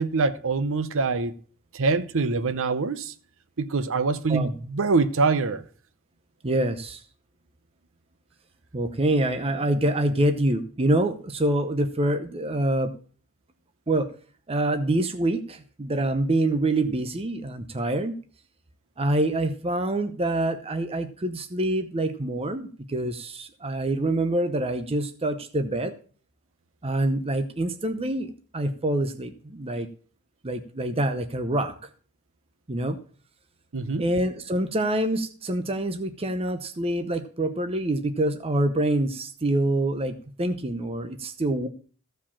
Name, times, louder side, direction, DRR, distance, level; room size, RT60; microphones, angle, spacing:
voice 1, 0.0-1.3 1.7-3.1 3.6-5.6 33.7-34.0, right 4 dB, 60° right, 0.7 m, -24 dB
voice 2, 6.4-7.0 8.7-12.9 13.9-14.1 14.5-18.1 19.0-25.9 26.8-29.9 30.4-31.9 32.7-33.0 34.0-41.7, right 1 dB, 25° right, 0.8 m, -26 dB
15.0 x 5.0 x 7.2 m
head